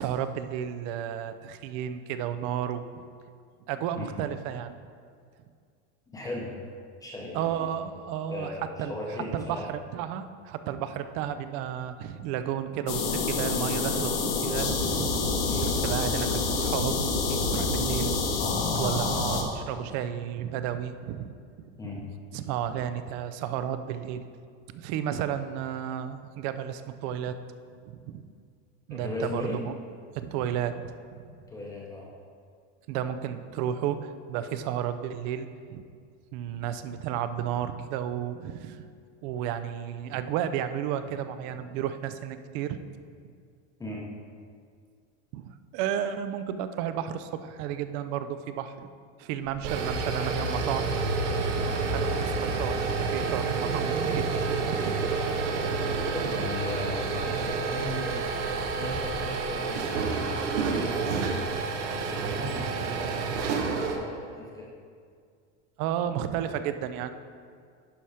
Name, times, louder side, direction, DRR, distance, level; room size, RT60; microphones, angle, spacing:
voice 1, 0.0-2.8 3.7-4.7 7.3-8.9 9.3-15.3 15.6-17.0 17.3-18.2 18.7-21.3 21.6-21.7 21.9-22.0 22.3-24.2 24.7-27.4 27.9-28.2 28.9-29.7 30.1-30.9 32.9-35.8 36.3-38.9 39.2-42.8 45.3-48.9 49.2-51.0 51.4-55.1 65.8-67.1, right 9 dB, 40° right, 11 dB, 0.4 m, -32 dB
voice 2, 6.1-6.5 7.0-7.7 8.3-9.7 15.4-15.7 21.8-22.1 28.9-29.6 31.5-32.1 43.8-44.1 56.1-61.2 61.8-64.7, left 2 dB, 10° left, -4 dB, 0.7 m, -38 dB
sound 1, 12.9-19.4, left 4 dB, 80° left, 1.4 m, -27 dB
sound 2, 49.4-64.0, right 4 dB, 90° right, 1.1 m, -29 dB
11.0 x 4.3 x 4.8 m, 2.2 s
supercardioid pair, 160°, 35 cm